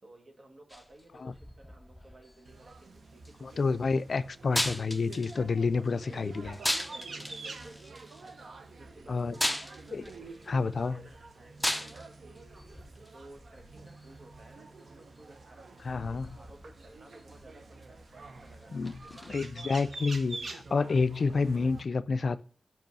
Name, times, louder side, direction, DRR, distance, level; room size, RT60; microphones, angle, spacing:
voice 1, 0.0-3.7 5.4-7.9 8.2-18.8 19.1-19.2 20.9-21.2, right 1 dB, 55° right, 1.5 m, -56 dB
sound 1, 0.7-19.4, left 1 dB, 5° left, 0.6 m, -40 dB
sound 2, 2.4-21.8, right 3 dB, 90° right, 0.7 m, -47 dB
voice 2, 3.4-6.6 9.1-9.3 9.9-10.1 10.5-11.0 15.8-16.4 18.7-22.4, left 4 dB, 70° left, 0.3 m, -29 dB
5.4 x 5.3 x 5.3 m
wide cardioid pair, 120°, 0 cm